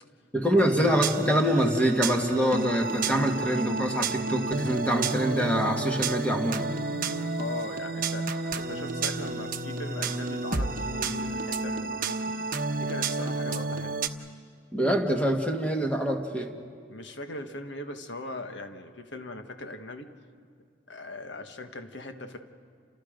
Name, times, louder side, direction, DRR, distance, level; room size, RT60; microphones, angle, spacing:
voice 1, 0.3-6.7 14.7-16.5, equal, 5° left, 2 dB, 1.8 m, -25 dB
sound 1, 0.6-14.1, right 3 dB, 45° right, 1.0 m, -31 dB
voice 2, 7.4-12.4 12.8-14.0 16.9-20.1 20.9-22.4, left 2 dB, 65° left, 6 dB, 1.4 m, -39 dB
29.5 x 28.0 x 5.2 m, 2.2 s
head